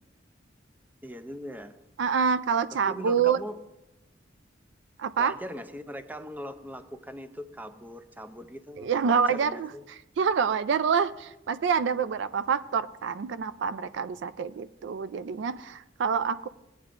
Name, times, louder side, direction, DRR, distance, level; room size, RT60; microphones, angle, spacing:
voice 1, 1.0-1.7 2.9-3.6 5.2-9.8, equal, 10° right, 9 dB, 0.5 m, -40 dB
voice 2, 2.0-3.4 5.0-5.3 8.8-16.5, right 6 dB, 65° right, 14 dB, 0.4 m, -27 dB
17.5 x 9.3 x 2.5 m, 0.94 s
head